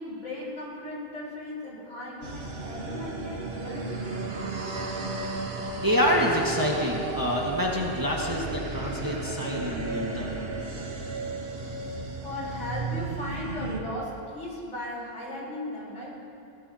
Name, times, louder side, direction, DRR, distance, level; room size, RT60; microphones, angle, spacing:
voice 1, 0.0-4.0 11.9-16.3, left 1 dB, 80° left, -6 dB, 4.4 m, -37 dB
sound 1, 2.2-13.8, right 3 dB, 55° right, 1.5 m, -34 dB
voice 2, 5.8-10.5, equal, 15° right, -3 dB, 1.5 m, -27 dB
20.0 x 16.0 x 2.8 m, 2.6 s
omnidirectional pair, 1.3 m